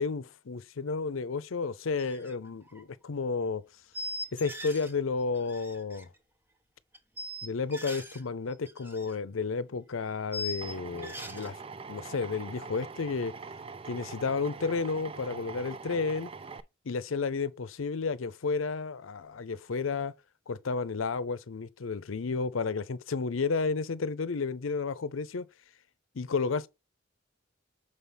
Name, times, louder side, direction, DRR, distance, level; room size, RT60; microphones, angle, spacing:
voice 1, 0.0-3.6 4.3-6.1 7.4-11.6 11.9-13.3 13.9-16.3 16.9-20.1 20.5-25.5 26.1-26.7, left 4 dB, 90° left, 0.6 m, -32 dB
sound 1, 2.0-2.3 2.6-2.8 3.9-4.9 5.2-6.0 6.9-8.2 8.5-9.2 9.4-9.5 10.3-11.5, left 1 dB, 10° right, 0.8 m, -40 dB
Drill, 10.6-16.6, right 4 dB, 30° right, 0.4 m, -43 dB
6.6 x 5.6 x 3.4 m
head